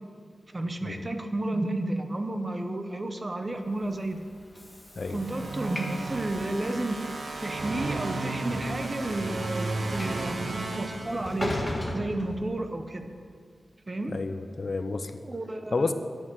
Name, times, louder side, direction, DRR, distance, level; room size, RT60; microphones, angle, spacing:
voice 1, 0.5-4.2 5.1-7.0 7.4-11.5 11.9-13.1 13.9-14.2 15.2-15.9, right 2 dB, 30° right, 7 dB, 0.9 m, -32 dB
Train / Sliding door, 3.7-13.0, left 1 dB, 10° left, 1.8 m, -39 dB
sound 1, 5.1-11.7, right 2 dB, 65° right, 1.1 m, -34 dB
voice 2, 14.1-15.2 15.7-15.9, left 3 dB, 50° left, 9 dB, 0.6 m, -30 dB
11.5 x 9.1 x 6.4 m, 2.1 s
wide cardioid pair, 100°, 0 cm